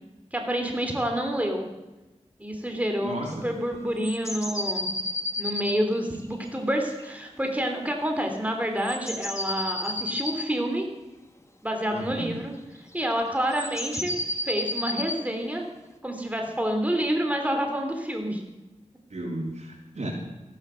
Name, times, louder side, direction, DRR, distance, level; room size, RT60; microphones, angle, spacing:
voice 1, 0.3-1.7 2.4-4.9 5.4-10.8 11.6-12.5 12.9-14.1 14.4-15.6 16.0-18.4, equal, 10° right, 3 dB, 3.2 m, -28 dB
voice 2, 3.0-3.5 11.9-12.4 19.1-20.1, right 1 dB, 65° right, -1 dB, 4.0 m, -34 dB
sound 1, 4.0-7.1 8.8-10.5 12.8-13.0 13.4-15.2, left 1 dB, 25° left, 1.8 m, -31 dB
14.5 x 12.0 x 6.5 m, 1.1 s
cardioid pair, 40°, 12 cm